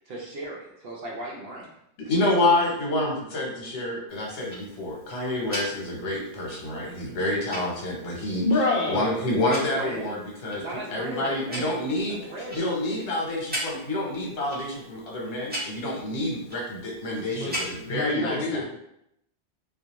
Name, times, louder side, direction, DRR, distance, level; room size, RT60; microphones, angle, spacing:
voice 1, 0.1-1.7 2.0-2.1 9.7-10.2 10.6-11.7 12.2-12.7, right 1 dB, 65° right, -2 dB, 0.8 m, -37 dB
voice 2, 2.1-8.4 8.9-10.6 10.9-12.2 12.5-18.6, left 1 dB, 75° left, -2 dB, 1.0 m, -28 dB
Tick-tock, 4.1-18.1, equal, 10° right, 0.5 m, -40 dB
voice 3, 8.3-9.2 17.3-18.6, left 2 dB, 55° left, 0 dB, 0.7 m, -27 dB
2.3 x 2.3 x 2.8 m, 0.78 s
omnidirectional pair, 1.2 m